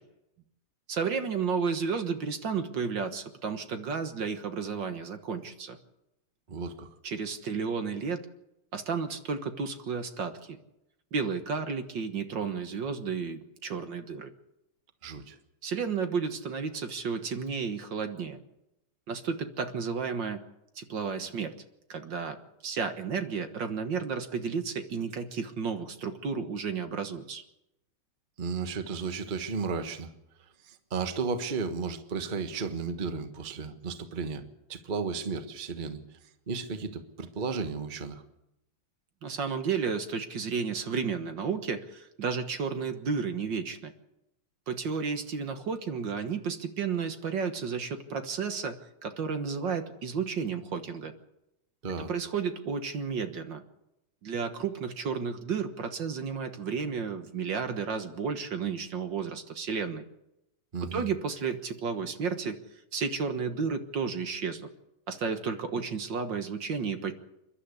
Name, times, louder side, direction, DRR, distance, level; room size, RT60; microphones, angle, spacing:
voice 1, 0.9-5.8 7.0-8.3 8.7-10.6 11.1-14.3 15.6-18.4 19.1-20.4 20.8-21.6 21.9-27.4 39.2-43.9 44.7-51.1 52.0-53.6 54.2-60.0 60.8-62.6 62.9-64.7 65.1-67.1, right 5 dB, 60° right, 8 dB, 2.0 m, -32 dB
voice 2, 6.5-6.9 15.0-15.3 28.4-30.1 30.7-34.4 34.7-36.0 36.5-38.2 51.8-52.1 60.7-61.0, right 5 dB, 25° right, 8 dB, 1.3 m, -34 dB
29.0 x 11.5 x 8.4 m, 0.87 s
omnidirectional pair, 2.4 m